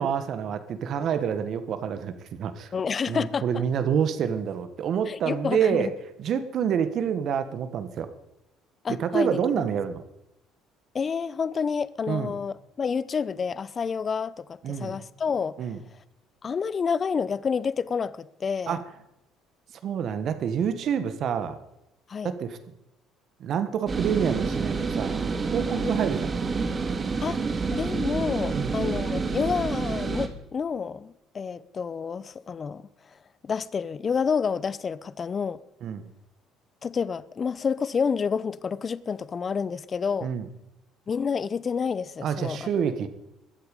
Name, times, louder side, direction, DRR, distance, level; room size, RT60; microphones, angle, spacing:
voice 1, 0.0-2.7 3.1-5.9 6.2-8.1 8.9-10.0 12.1-12.3 14.6-15.0 15.6-15.8 18.7-18.8 19.8-21.6 22.2-22.6 23.4-25.2 25.5-26.3 28.5-28.8 35.8-36.1 40.2-40.5 42.2-43.1, right 7 dB, 55° right, 1.6 m, -27 dB
voice 2, 2.7-3.6 5.1-5.9 8.8-9.4 10.9-15.5 16.4-18.8 22.1-22.3 25.8-26.0 27.2-27.4 27.7-32.9 33.4-35.6 36.8-40.3 41.1-42.7, left 6 dB, 35° left, 0.8 m, -29 dB
sound 1, 23.9-30.3, right 4 dB, 30° right, 2.1 m, -28 dB
22.0 x 8.0 x 5.4 m
supercardioid pair, 90°, 0 cm